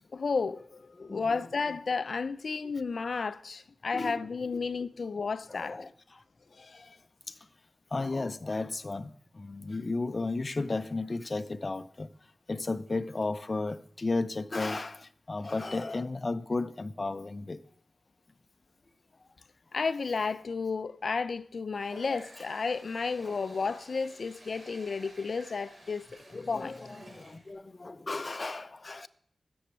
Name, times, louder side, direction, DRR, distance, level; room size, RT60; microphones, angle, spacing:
voice 1, 0.1-5.9 6.6-6.9 19.7-26.7, left 4 dB, 75° left, 0.5 m, -32 dB
voice 2, 1.0-1.4 3.9-4.2 5.5-6.2 6.8-6.9 7.3-7.4 7.9-12.1 12.5-17.6 26.3-29.1, left 3 dB, 45° left, 0.8 m, -34 dB
Water tap faucet, 21.7-27.5, right 1 dB, 45° right, 5.5 m, -52 dB
13.5 x 7.1 x 9.3 m
cardioid pair, 55°, 0 cm